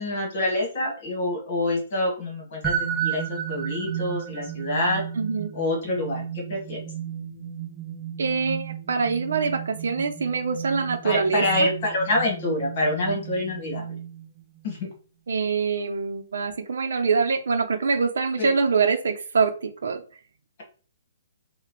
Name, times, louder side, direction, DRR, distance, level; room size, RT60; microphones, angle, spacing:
voice 1, 0.0-2.7 3.0-5.0 5.5-6.8 11.0-13.9 14.6-14.9 18.4-18.5, left 2 dB, 30° left, -1 dB, 1.5 m, -26 dB
sound 1, 2.6-14.4, right 8 dB, 5° right, 0.9 m, -33 dB
voice 2, 5.2-5.5 8.2-11.7 15.3-20.0, right 5 dB, 75° right, 4 dB, 0.7 m, -24 dB
5.8 x 2.3 x 3.1 m, 0.38 s
hypercardioid pair, 175°, 0 cm